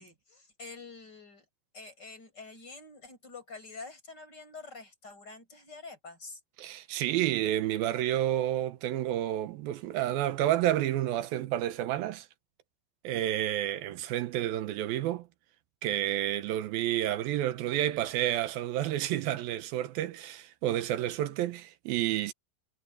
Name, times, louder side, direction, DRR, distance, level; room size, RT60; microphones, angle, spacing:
voice 1, 0.0-1.5 1.7-6.4, left 3 dB, 20° left, 7.3 m, -47 dB
voice 2, 6.6-12.3 13.0-15.3 15.8-22.3, right 13 dB, 75° right, 2.3 m, -30 dB
omnidirectional pair, 5.2 m